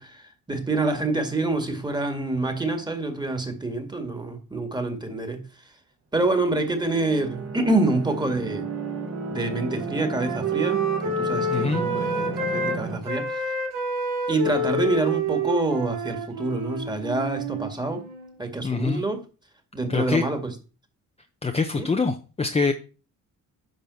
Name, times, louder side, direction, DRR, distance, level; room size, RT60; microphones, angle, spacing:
voice 1, 0.0-5.5 6.1-8.7 9.3-13.6 14.3-18.0 18.4-19.2 19.7-20.5 21.7-21.9, right 2 dB, 15° right, 2.1 m, -27 dB
sound 1, 6.3-13.0, right 3 dB, 50° right, 2.3 m, -35 dB
Wind instrument woodwind instrument, 7.8-12.8 13.0-18.3, right 2 dB, 85° right, 3.0 m, -29 dB
voice 2, 11.5-11.8 18.6-19.0 19.9-20.2 21.4-22.7, left 4 dB, 20° left, 0.8 m, -24 dB
10.5 x 4.0 x 7.0 m
cardioid pair, 115°, 32 cm